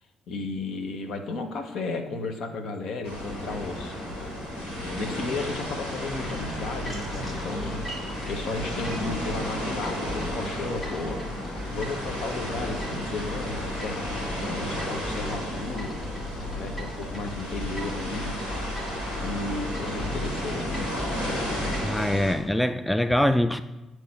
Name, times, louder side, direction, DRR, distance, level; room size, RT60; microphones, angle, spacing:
voice 1, 0.3-4.0 4.8-7.8 8.3-11.2 11.7-15.9 16.5-18.4 19.2-20.9 21.9-22.1, left 3 dB, 65° left, 6 dB, 0.8 m, -34 dB
sound 1, 3.0-22.3, left 1 dB, 85° left, 1.7 m, -33 dB
sound 2, 6.1-22.0, equal, 40° left, 2.0 m, -37 dB
voice 2, 21.8-23.6, left 1 dB, 5° left, 11 dB, 0.3 m, -23 dB
9.2 x 3.2 x 4.3 m, 1.1 s
hypercardioid pair, 45°, 0 cm